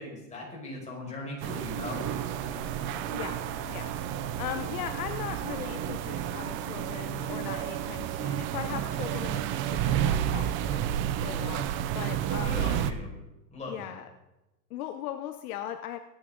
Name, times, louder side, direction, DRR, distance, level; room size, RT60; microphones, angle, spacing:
voice 1, 0.0-2.1 12.4-13.2 13.5-14.0, left 2 dB, 15° left, -3 dB, 5.3 m, -39 dB
sound 1, 1.4-12.9, right 11 dB, 25° right, 0.5 m, -31 dB
sound 2, 1.9-11.1, left 4 dB, 35° left, 3.6 m, -50 dB
voice 2, 3.1-10.9 11.2-11.7 11.9-12.7 13.7-14.1 14.7-16.0, left 11 dB, 65° left, 9 dB, 1.0 m, -39 dB
22.0 x 10.5 x 3.9 m, 0.96 s
supercardioid pair, 145°, 47 cm